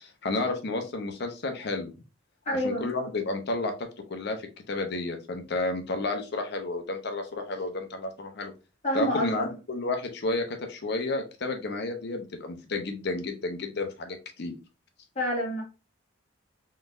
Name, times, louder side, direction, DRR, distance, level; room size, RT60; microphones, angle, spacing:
voice 1, 0.0-1.9 2.6-8.5 8.9-14.5, left 2 dB, 60° left, 5 dB, 0.7 m, -31 dB
voice 2, 2.4-2.9 8.8-9.3 15.1-15.6, equal, 35° left, -3 dB, 1.5 m, -27 dB
3.8 x 3.2 x 2.6 m, 0.31 s
head